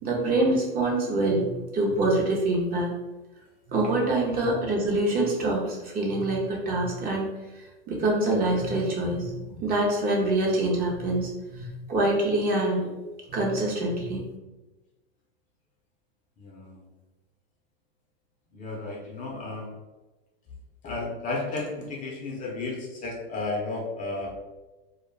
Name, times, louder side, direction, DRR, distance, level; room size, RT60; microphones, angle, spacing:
voice 1, 0.0-1.5 1.7-2.9 3.7-7.3 7.9-12.8 13.3-14.2, right 2 dB, 30° right, -2 dB, 0.7 m, -25 dB
voice 2, 16.4-16.9 18.5-19.7 20.8-24.4, left 3 dB, 25° left, -2 dB, 0.6 m, -33 dB
2.3 x 2.1 x 3.2 m, 1.1 s
hypercardioid pair, 105°, 30 cm